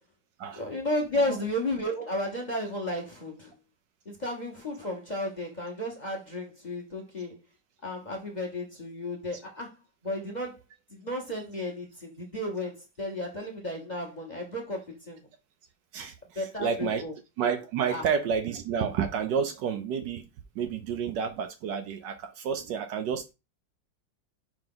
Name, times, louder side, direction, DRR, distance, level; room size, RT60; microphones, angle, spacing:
voice 1, 0.5-3.5 4.0-7.4 7.8-9.8 10.0-10.6 10.9-15.2 16.3-17.1 17.9-18.0, left 1 dB, 25° left, 1.2 m, -33 dB
voice 2, 15.9-17.0 17.4-20.3 20.5-23.3, right 7 dB, 70° right, 1.2 m, -30 dB
5.1 x 4.8 x 3.8 m
omnidirectional pair, 2.2 m